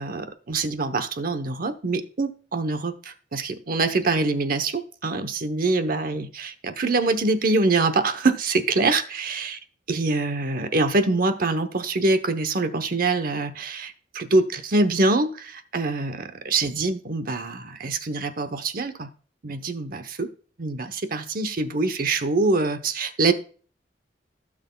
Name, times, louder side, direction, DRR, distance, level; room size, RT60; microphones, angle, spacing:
voice 1, 0.0-9.6 9.9-19.1 19.4-20.3 20.6-23.3, right 3 dB, 55° right, 0.9 m, -24 dB
16.0 x 6.2 x 2.3 m
head